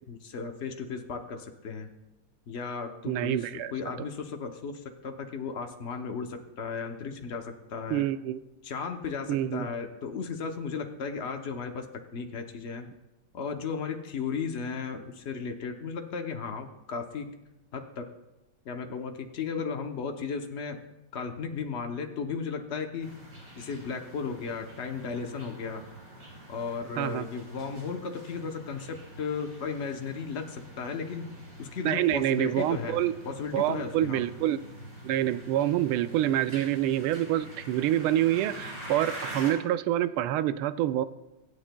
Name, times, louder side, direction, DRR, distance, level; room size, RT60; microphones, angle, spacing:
voice 1, 0.1-1.9 2.5-8.0 8.6-11.9 12.1-12.9 13.3-17.3 17.7-18.0 18.6-20.8 21.1-23.2 23.6-25.8 26.5-31.3 31.6-33.0 33.3-34.2, left 5 dB, 80° left, 4 dB, 0.6 m, -35 dB
voice 2, 3.1-3.7 7.9-8.4 9.3-9.7 27.0-27.3 31.8-33.1 33.5-34.6 35.0-41.0, right 13 dB, 80° right, 13 dB, 1.4 m, -27 dB
sound 1, 23.0-39.5, right 1 dB, 60° right, 5.1 m, -45 dB
25.0 x 8.6 x 2.2 m, 0.96 s
omnidirectional pair, 2.4 m